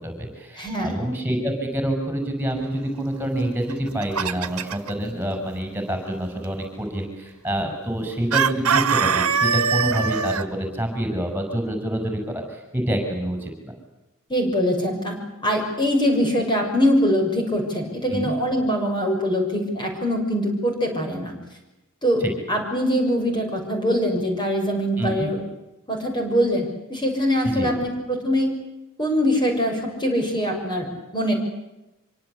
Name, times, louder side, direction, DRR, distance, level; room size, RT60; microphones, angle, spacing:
voice 1, 0.0-13.7 18.1-18.3 22.2-22.3 25.0-25.1 27.4-27.7, right 1 dB, 10° right, 4 dB, 6.7 m, -27 dB
voice 2, 0.5-1.0 14.3-21.3 22.0-22.2 22.5-25.4 25.9-28.5 29.0-30.9 31.1-31.3, equal, 20° left, 2 dB, 6.6 m, -23 dB
Chicken rooster, 3.7-4.9 8.3-10.4, right 6 dB, 85° right, 1.8 m, -22 dB
26.5 x 24.5 x 8.4 m, 0.96 s
head